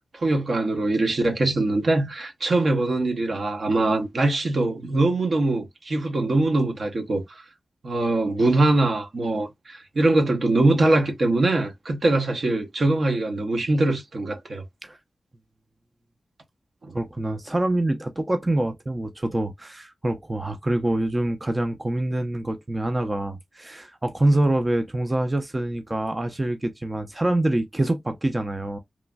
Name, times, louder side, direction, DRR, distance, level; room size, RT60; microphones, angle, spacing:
voice 1, 0.1-7.4 7.8-14.6 16.8-17.0, right 2 dB, 60° right, 0.7 m, -22 dB
voice 2, 16.9-28.8, right 1 dB, 25° right, 0.5 m, -25 dB
3.1 x 2.4 x 2.2 m
cardioid pair, 55°, 0 cm